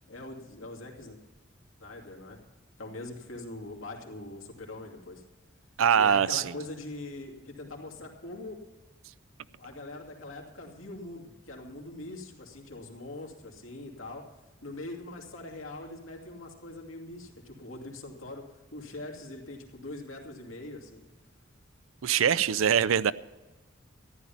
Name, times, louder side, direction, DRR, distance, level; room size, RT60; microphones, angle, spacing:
voice 1, 0.1-1.2 1.8-2.4 2.8-5.2 6.0-8.6 9.6-14.3 14.6-18.4 18.7-21.0, left 2 dB, 85° left, 2.7 m, -42 dB
voice 2, 5.8-6.5 22.0-23.1, right 8 dB, 85° right, 0.4 m, -23 dB
14.0 x 11.0 x 5.8 m
head